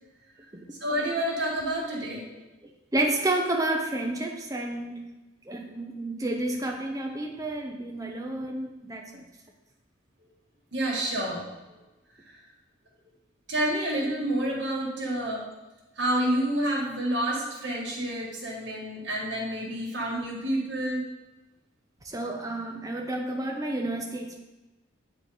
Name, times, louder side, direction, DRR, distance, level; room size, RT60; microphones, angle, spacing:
voice 1, 0.8-2.2 10.7-11.4 13.5-15.4 16.0-21.0, right 1 dB, 65° right, -3 dB, 1.7 m, -28 dB
voice 2, 2.9-5.0 5.5-9.2 22.0-24.4, right 2 dB, 15° right, 1 dB, 0.7 m, -30 dB
8.3 x 3.1 x 4.2 m, 1.1 s
head